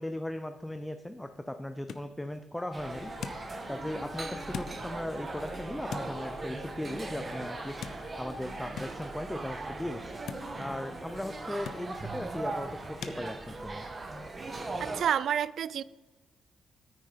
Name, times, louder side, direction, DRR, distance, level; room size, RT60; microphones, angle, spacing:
voice 1, 0.0-3.1 3.7-10.1 10.6-13.9, left 1 dB, 5° left, 0.5 m, -38 dB
sound 1, 1.0-13.2, left 7 dB, 70° left, 0.8 m, -47 dB
sound 2, 2.5-8.6, left 2 dB, 45° left, 1.7 m, -50 dB
sound 3, 2.7-15.0, right 2 dB, 25° right, 1.3 m, -39 dB
voice 2, 14.8-15.8, right 9 dB, 60° right, 0.4 m, -29 dB
9.9 x 9.3 x 5.1 m
cardioid pair, 140°, 0 cm